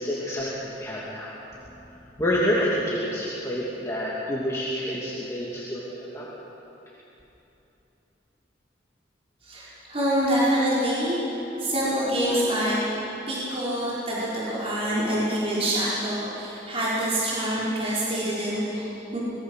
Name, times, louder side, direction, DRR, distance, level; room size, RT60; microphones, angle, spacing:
voice 1, 0.0-1.3 2.2-6.3, equal, 15° left, -7 dB, 2.7 m, -28 dB
voice 2, 9.4-13.0 13.3-19.2, equal, 35° right, -9 dB, 5.4 m, -26 dB
24.5 x 21.5 x 6.6 m, 3.0 s
head